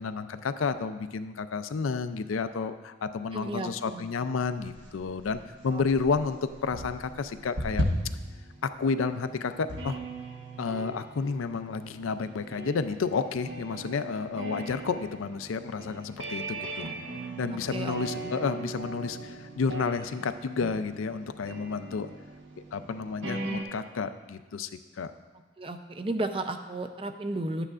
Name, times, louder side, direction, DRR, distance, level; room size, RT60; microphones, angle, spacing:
voice 1, 0.0-7.8 8.6-10.0 10.6-16.9 17.4-22.1 22.7-24.7 25.0-25.1, left 5 dB, 90° left, 11 dB, 0.4 m, -31 dB
voice 2, 3.3-4.0 5.7-6.0 17.7-18.3 25.6-27.6, right 2 dB, 25° right, 8 dB, 0.4 m, -34 dB
sound 1, 4.5-23.6, right 1 dB, 70° right, 1.1 m, -38 dB
11.5 x 9.0 x 2.4 m, 1.3 s
head